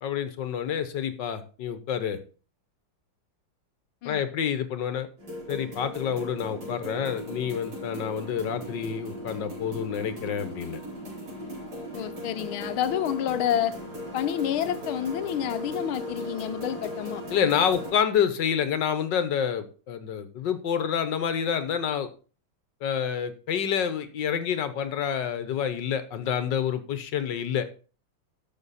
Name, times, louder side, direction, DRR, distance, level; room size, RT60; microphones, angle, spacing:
voice 1, 0.0-2.2 4.0-5.1 5.5-10.8 17.3-22.1 22.8-27.7, left 8 dB, 65° left, 1.6 m, -28 dB
sound 1, 5.2-17.9, equal, 85° right, 5.7 m, -38 dB
voice 2, 11.9-13.7 14.1-17.2, left 11 dB, 80° left, 1.6 m, -29 dB
12.0 x 6.8 x 4.2 m
omnidirectional pair, 2.3 m